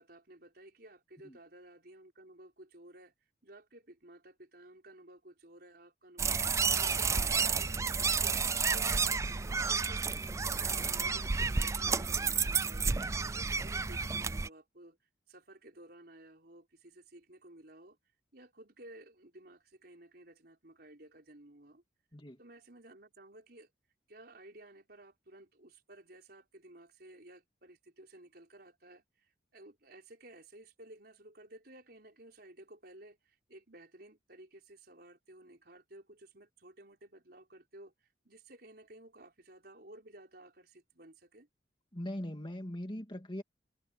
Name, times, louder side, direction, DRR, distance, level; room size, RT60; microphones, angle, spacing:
voice 1, 0.0-3.1 3.4-10.3 10.6-15.0 15.3-18.0 18.3-21.8 22.4-23.7 24.1-41.5, right 1 dB, 55° right, 5.0 m, -55 dB
sound 1, 6.2-14.5, right 5 dB, 15° right, 0.3 m, -31 dB
voice 2, 41.9-43.4, left 1 dB, 25° left, 2.7 m, -41 dB
head